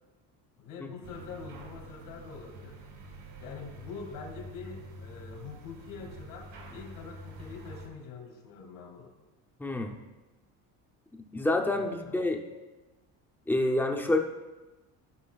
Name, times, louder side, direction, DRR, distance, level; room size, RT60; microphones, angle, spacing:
voice 1, 0.6-2.8 3.4-9.1 11.7-12.3, left 5 dB, 80° left, 3 dB, 2.3 m, -44 dB
sound 1, 1.0-7.9, right 1 dB, 85° right, 2.0 m, -47 dB
voice 2, 9.6-10.0 11.3-12.4 13.5-14.2, left 2 dB, 5° left, 2 dB, 0.5 m, -27 dB
13.5 x 5.4 x 2.3 m, 1.1 s
cardioid pair, 140°, 39 cm